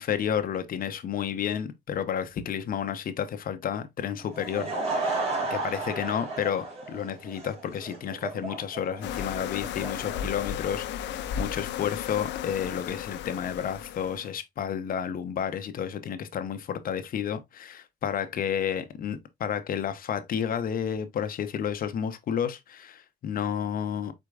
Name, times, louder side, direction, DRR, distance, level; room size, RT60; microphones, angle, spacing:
voice 1, 0.0-4.7 5.0-24.1, left 8 dB, 50° left, 0.8 m, -31 dB
Laughter / Crowd, 4.2-11.1, right 3 dB, 35° right, 2.5 m, -34 dB
sound 1, 9.0-14.3, left 9 dB, 75° left, 0.6 m, -34 dB
4.7 x 4.4 x 2.4 m
cardioid pair, 135°, 19 cm